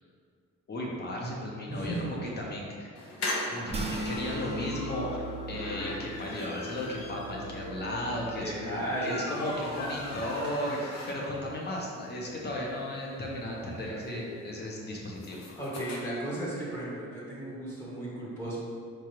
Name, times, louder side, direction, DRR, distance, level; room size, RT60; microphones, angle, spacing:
voice 1, 0.7-2.9 3.5-15.6, left 1 dB, 35° left, -2 dB, 0.8 m, -35 dB
voice 2, 1.7-2.1 8.2-9.2 13.8-14.2 15.6-18.6, right 1 dB, 10° left, -7 dB, 1.0 m, -35 dB
sound 1, 3.0-11.5 11.9-12.0 12.3-12.4 12.6-16.0, left 1 dB, 65° left, 0.7 m, -39 dB
sound 2, 3.7-10.2, right 1 dB, 20° right, 0.3 m, -40 dB
4.5 x 2.4 x 3.1 m, 2.2 s
cardioid pair, 90°, 30 cm